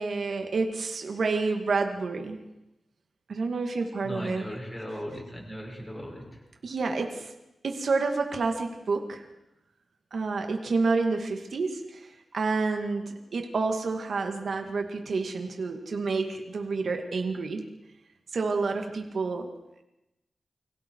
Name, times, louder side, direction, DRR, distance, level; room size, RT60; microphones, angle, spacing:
voice 1, 0.0-2.4 3.3-4.4 6.6-7.3 7.6-9.3 10.1-17.7 18.3-19.5, right 4 dB, 60° right, 4 dB, 2.2 m, -29 dB
voice 2, 4.0-6.4, equal, 15° left, -1 dB, 6.6 m, -38 dB
29.5 x 24.0 x 4.7 m, 0.93 s
wide cardioid pair, 155°, 0 cm